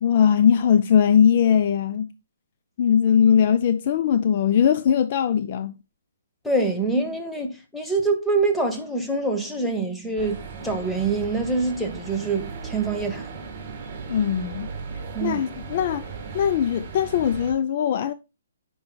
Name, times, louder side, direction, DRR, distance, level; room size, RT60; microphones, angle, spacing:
voice 1, 0.0-2.1 2.8-5.7 14.1-14.7 15.2-16.1 16.3-18.1, left 8 dB, 40° left, 0.4 m, -20 dB
voice 2, 6.4-13.3 15.1-15.4, right 3 dB, 5° left, 0.9 m, -25 dB
sound 1, 10.2-17.5, right 5 dB, 30° right, 1.7 m, -37 dB
9.5 x 4.8 x 2.2 m
hypercardioid pair, 160°, 0 cm